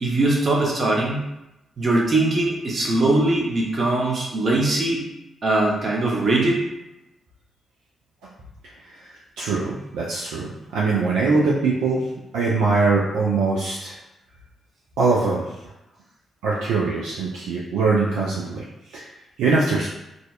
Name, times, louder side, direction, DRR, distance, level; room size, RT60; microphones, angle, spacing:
voice 1, 0.0-1.3 1.8-5.0 5.4-6.6, right 2 dB, 50° right, -2 dB, 0.7 m, -21 dB
voice 2, 9.4-12.0 12.3-14.0 15.0-15.5 16.4-18.6 18.9-19.1 19.4-19.9, right 4 dB, 80° right, -5 dB, 0.3 m, -22 dB
2.6 x 2.1 x 2.3 m, 0.92 s
hypercardioid pair, 40°, 0 cm